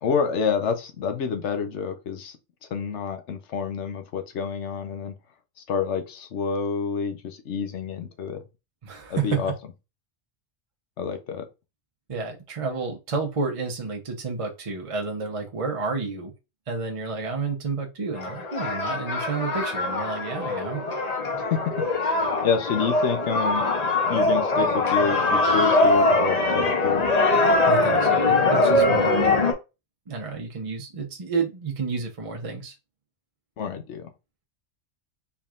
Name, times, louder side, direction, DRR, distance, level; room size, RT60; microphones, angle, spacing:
voice 1, 0.0-2.4 2.7-5.1 5.6-8.4 9.1-9.5 11.0-11.5 21.5-23.6 24.1-27.0 33.6-34.1, left 6 dB, 80° left, 1.0 m, -28 dB
voice 2, 8.8-9.4 12.1-16.3 16.7-20.8 27.7-29.2 30.1-32.7, right 4 dB, 35° right, 0.7 m, -30 dB
sound 1, 18.2-29.5, left 2 dB, 40° left, 0.8 m, -22 dB
4.6 x 3.6 x 2.4 m
omnidirectional pair, 1.2 m